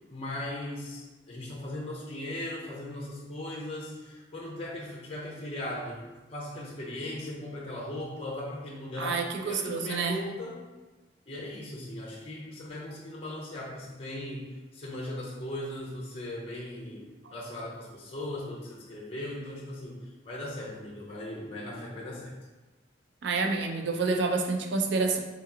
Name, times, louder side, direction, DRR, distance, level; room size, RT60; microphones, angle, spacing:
voice 1, 0.1-10.7 11.3-22.4, left 1 dB, 30° left, -3 dB, 0.6 m, -38 dB
voice 2, 9.0-10.2 23.2-25.2, right 4 dB, 65° right, 4 dB, 0.4 m, -28 dB
3.6 x 2.9 x 3.6 m, 1.2 s
head